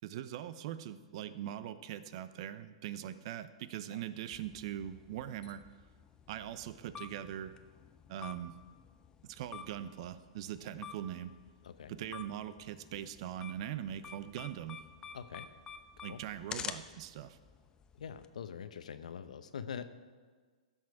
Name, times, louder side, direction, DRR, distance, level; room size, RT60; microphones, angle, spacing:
voice 1, 0.0-5.6 6.3-7.5 8.1-8.6 9.2-11.3 11.9-14.8 16.0-17.4, right 11 dB, 50° right, 14 dB, 0.6 m, -41 dB
sound 1, 4.3-18.2, left 6 dB, 20° left, 0.6 m, -50 dB
voice 2, 15.1-15.5 16.1-16.2 18.0-19.9, left 7 dB, 75° left, 11 dB, 0.8 m, -44 dB
15.5 x 6.3 x 4.8 m, 1.5 s
hypercardioid pair, 125°, 4 cm